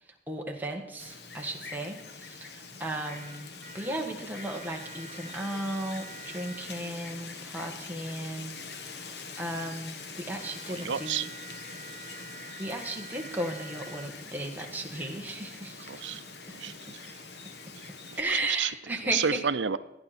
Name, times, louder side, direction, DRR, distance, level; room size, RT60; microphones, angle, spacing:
voice 1, 0.3-8.5 8.9-11.3 12.6-16.5 16.9-17.0 18.2-19.4, right 1 dB, 10° right, 0 dB, 1.7 m, -35 dB
Wind, 1.0-18.2, left 4 dB, 60° left, 1.3 m, -44 dB
sound 1, 3.0-3.9 4.3-6.6 10.4-14.1, right 4 dB, 10° left, 3.5 m, -47 dB
voice 2, 10.7-11.3 15.9-16.2 16.5-17.2 17.8-18.7 19.0-19.8, right 7 dB, 85° right, 13 dB, 0.6 m, -32 dB
17.5 x 9.8 x 4.4 m, 0.97 s
head